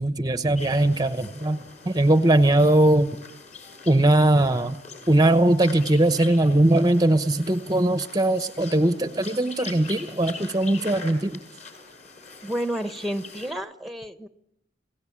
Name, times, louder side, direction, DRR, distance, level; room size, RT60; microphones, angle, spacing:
voice 1, 0.0-3.1 3.9-4.8 5.1-11.4, right 1 dB, 20° right, 10 dB, 1.0 m, -20 dB
sound 1, 0.5-13.5, left 4 dB, 40° left, 6.4 m, -43 dB
voice 2, 12.4-14.3, equal, ahead, 11 dB, 1.3 m, -30 dB
29.0 x 17.5 x 8.7 m, 0.80 s
head